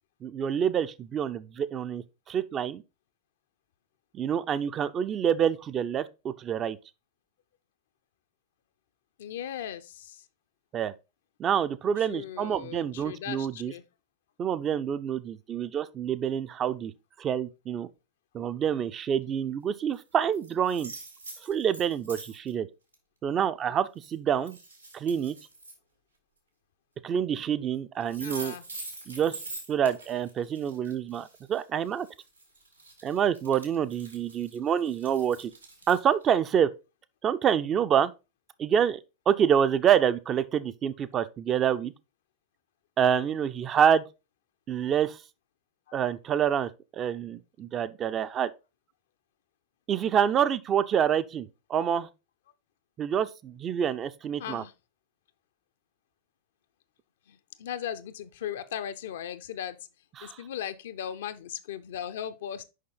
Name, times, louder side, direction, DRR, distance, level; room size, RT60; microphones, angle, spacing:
voice 1, 0.2-2.8 4.1-6.8 10.7-10.9 11.4-13.7 14.4-16.9 17.2-17.9 18.3-20.9 21.4-22.7 23.2-24.6 24.9-25.4 27.0-28.6 29.1-29.3 29.7-32.1 33.0-35.5 35.9-36.7 37.2-38.1 38.6-39.0 39.3-41.9 43.0-44.0 44.7-45.2 45.9-48.5 49.9-52.1 53.0-54.6 60.2-60.4, right 8 dB, 30° right, 0.5 m, -27 dB
voice 2, 9.2-10.2 12.1-13.8 28.2-28.6 45.9-46.0 54.4-54.7 57.3-59.8 60.2-62.6, left 9 dB, 60° left, 0.6 m, -37 dB
sound 1, 19.9-20.0 20.3-22.5 22.9-23.0 24.0-24.1 24.4-25.8 27.7-27.8 28.1-36.3, right 3 dB, 85° right, 2.1 m, -44 dB
6.5 x 5.4 x 3.8 m
figure-of-eight pair, 90°, 0 cm